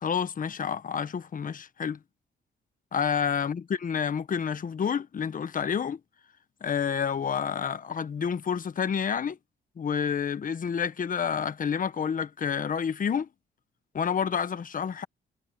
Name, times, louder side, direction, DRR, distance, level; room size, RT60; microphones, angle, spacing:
voice 1, 0.0-2.0 2.9-6.0 6.6-9.4 9.8-13.3 13.9-15.0, left 7 dB, 45° left, 1.3 m, -29 dB
cardioid pair, 90°, 20 cm